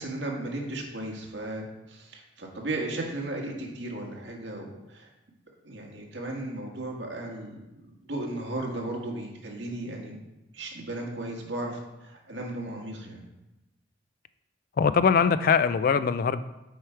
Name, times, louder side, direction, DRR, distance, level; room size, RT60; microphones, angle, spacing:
voice 1, 0.0-5.1 5.6-7.5 8.0-10.2 10.5-13.2, right 2 dB, 75° right, 0 dB, 1.6 m, -35 dB
voice 2, 14.8-16.4, left 6 dB, 50° left, 13 dB, 0.3 m, -22 dB
8.0 x 4.8 x 4.5 m, 0.99 s
head